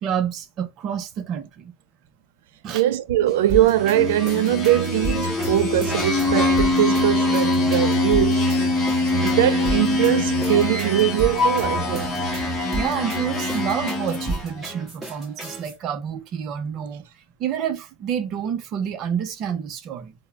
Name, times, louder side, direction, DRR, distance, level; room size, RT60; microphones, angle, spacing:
voice 1, 0.0-1.7 2.6-2.8 12.7-17.0 17.4-20.1, right 8 dB, 35° right, 0.6 m, -28 dB
voice 2, 2.7-8.5 9.2-12.1, right 13 dB, 70° right, 0.4 m, -21 dB
sound 1, 3.5-15.7, right 2 dB, 15° right, 1.5 m, -33 dB
sound 2, 3.7-14.6, left 2 dB, 15° left, 0.8 m, -23 dB
3.5 x 2.1 x 3.4 m
supercardioid pair, 160°, 0 cm